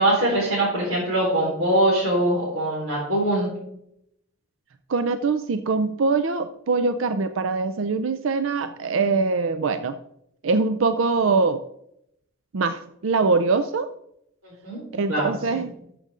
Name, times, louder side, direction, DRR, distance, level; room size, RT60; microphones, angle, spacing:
voice 1, 0.0-3.5 14.4-14.8 15.1-15.6, right 1 dB, 90° right, -8 dB, 4.3 m, -22 dB
voice 2, 4.9-10.0 10.4-11.6 12.5-13.9 14.9-15.7, right 4 dB, 75° right, 10 dB, 0.5 m, -23 dB
13.5 x 6.8 x 3.8 m, 0.76 s
head